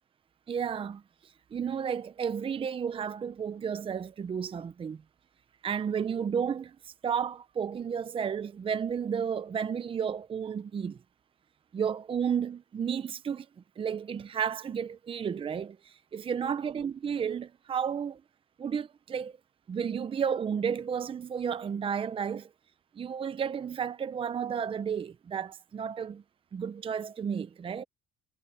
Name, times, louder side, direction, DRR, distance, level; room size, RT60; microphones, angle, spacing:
voice 1, 0.5-5.0 5.6-11.0 11.7-13.5 13.8-18.2 18.6-19.4 19.7-22.5 23.0-26.2 26.5-27.8, right 7 dB, 30° right, 0.7 m, -32 dB
cardioid pair, 110°, 17 cm